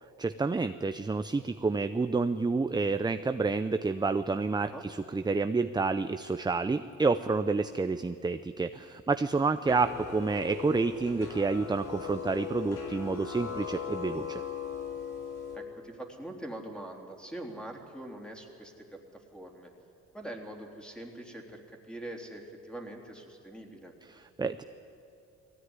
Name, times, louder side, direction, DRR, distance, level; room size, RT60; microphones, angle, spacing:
voice 1, 0.2-14.4 24.1-24.6, right 4 dB, 15° right, 10 dB, 0.6 m, -29 dB
voice 2, 9.6-9.9 15.5-19.7 20.1-23.9, right 1 dB, 5° left, 1 dB, 3.5 m, -43 dB
sound 1, 9.7-15.6, left 6 dB, 80° left, 2.7 m, -38 dB
20.0 x 16.0 x 9.8 m, 2.6 s
cardioid pair, 90°, 30 cm